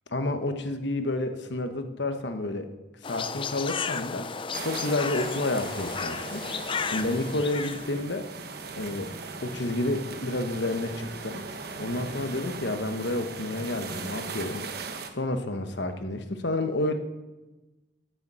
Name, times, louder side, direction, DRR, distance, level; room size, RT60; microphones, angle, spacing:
voice 1, 0.1-2.7 3.0-4.3 4.6-6.4 6.9-8.3 8.8-9.1 9.4-11.4 11.8-14.6 15.1-16.9, left 2 dB, 60° left, 8 dB, 1.2 m, -30 dB
sound 1, 3.0-7.9, left 5 dB, 25° left, 0.4 m, -33 dB
sound 2, 4.5-15.1, right 4 dB, 50° right, 1.1 m, -39 dB
13.5 x 7.0 x 7.5 m, 1.1 s
head